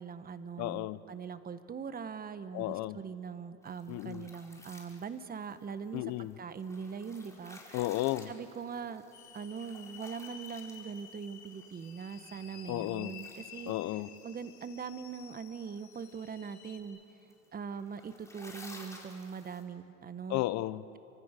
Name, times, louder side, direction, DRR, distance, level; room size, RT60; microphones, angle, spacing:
voice 1, 0.0-7.8 8.3-9.0 9.3-13.7 14.2-17.0 17.5-20.4, right 6 dB, 30° right, 11 dB, 1.5 m, -42 dB
voice 2, 0.6-1.0 2.5-3.0 3.9-4.3 5.9-6.3 7.7-8.3 12.7-13.1 13.7-14.1 20.3-20.8, left 17 dB, 55° left, 16 dB, 1.0 m, -33 dB
sound 1, 3.6-19.6, left 2 dB, 10° left, 4.7 m, -56 dB
sound 2, 9.1-16.8, left 8 dB, 90° left, 3.4 m, -52 dB
29.5 x 25.0 x 6.8 m, 3.0 s
supercardioid pair, 100°, 32 cm